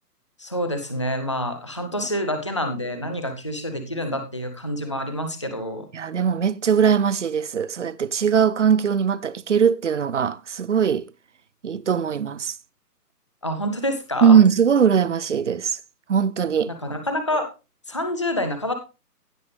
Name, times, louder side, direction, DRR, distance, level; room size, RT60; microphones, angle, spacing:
voice 1, 0.4-5.9 13.4-14.4 16.7-17.5 17.9-18.7, left 1 dB, 20° left, 0.5 m, -27 dB
voice 2, 5.9-11.1 11.6-12.6 14.2-15.8 16.1-16.7, right 7 dB, 50° right, 0.6 m, -20 dB
16.0 x 5.5 x 3.3 m
hypercardioid pair, 160°, 49 cm